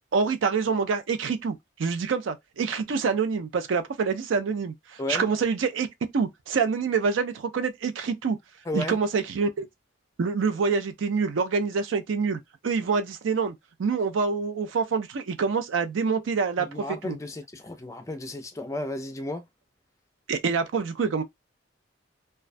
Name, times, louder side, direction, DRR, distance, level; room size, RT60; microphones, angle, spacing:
voice 1, 0.1-1.5 1.8-5.9 6.1-8.4 8.7-9.7 10.2-13.5 13.8-17.2 20.3-21.2, right 5 dB, 80° right, 0.4 m, -26 dB
voice 2, 8.7-9.0 16.6-19.4, left 1 dB, 15° left, 0.4 m, -33 dB
2.3 x 2.2 x 2.4 m
head